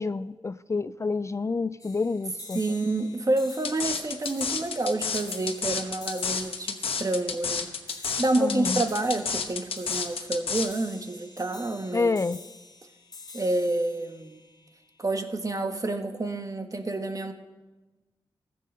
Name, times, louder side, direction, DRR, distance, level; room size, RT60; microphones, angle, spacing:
voice 1, 0.0-2.6 8.4-8.8 11.9-12.4, left 4 dB, 30° left, 0.3 m, -28 dB
sound 1, 1.8-15.3, left 3 dB, 50° left, 2.2 m, -48 dB
voice 2, 2.5-7.7 8.2-12.1 13.3-14.4 15.0-17.3, right 2 dB, 40° right, 1.3 m, -28 dB
sound 2, 3.6-10.7, left 6 dB, 85° left, 1.0 m, -30 dB
15.0 x 7.6 x 6.6 m
cardioid pair, 50°, 9 cm